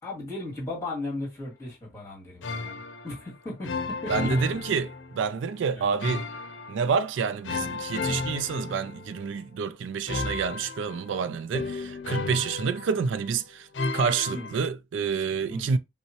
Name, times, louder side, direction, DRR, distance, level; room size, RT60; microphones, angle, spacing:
voice 1, 0.0-4.6 5.7-6.0 14.3-14.5 15.5-15.8, left 2 dB, 15° left, 2.0 m, -37 dB
sound 1, 2.4-3.3 3.6-5.3 6.0-7.0 7.4-9.4 10.1-13.3 13.7-14.7, left 3 dB, 75° left, 0.6 m, -33 dB
voice 2, 4.1-6.3 6.7-13.7 13.9-15.8, right 5 dB, 80° right, 0.3 m, -28 dB
5.4 x 2.1 x 2.9 m
head